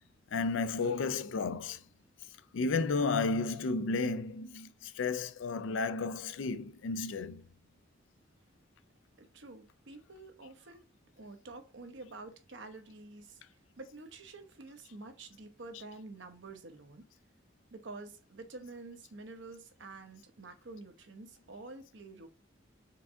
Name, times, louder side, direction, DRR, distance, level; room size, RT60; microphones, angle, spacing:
voice 1, 0.3-1.8 2.5-7.4 15.7-15.8, left 4 dB, 85° left, 0.4 m, -32 dB
voice 2, 9.2-10.8 11.2-13.4 13.8-17.1 17.7-22.3, right 3 dB, 75° right, 0.8 m, -48 dB
4.6 x 3.5 x 2.6 m
head